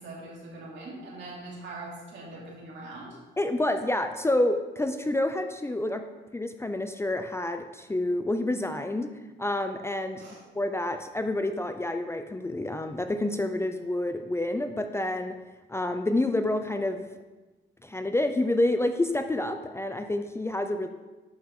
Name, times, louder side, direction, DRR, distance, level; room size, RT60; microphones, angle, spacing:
voice 1, 0.0-3.2 10.2-10.4, right 2 dB, 65° right, -4 dB, 2.8 m, -42 dB
voice 2, 3.4-6.0 6.3-9.1 9.4-10.2 10.5-15.4 15.7-17.1 17.8-20.9, left 1 dB, 15° left, 7 dB, 0.5 m, -28 dB
11.0 x 5.6 x 3.7 m, 1.2 s
cardioid pair, 90°, 20 cm